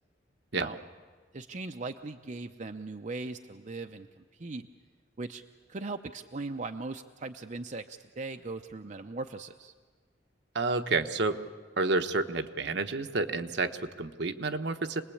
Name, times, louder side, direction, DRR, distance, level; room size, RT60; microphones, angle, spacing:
voice 1, 1.3-4.7 5.2-5.4 5.7-9.7, right 3 dB, 40° right, 6 dB, 0.7 m, -39 dB
voice 2, 10.5-11.4 11.8-15.0, right 3 dB, 65° right, 7 dB, 1.1 m, -30 dB
26.5 x 20.0 x 8.6 m, 1.5 s
head